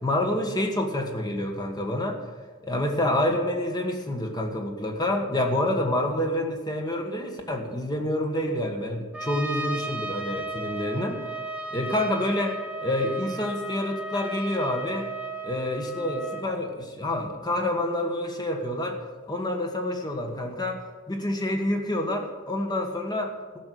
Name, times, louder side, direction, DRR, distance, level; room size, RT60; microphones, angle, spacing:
voice 1, 0.0-2.2 2.6-11.2 11.7-15.1 15.4-19.0 19.3-23.6, left 1 dB, 20° left, 4 dB, 1.4 m, -28 dB
Trumpet, 9.1-16.5, right 2 dB, 5° right, 0.9 m, -35 dB
13.0 x 6.2 x 8.4 m, 1.4 s
head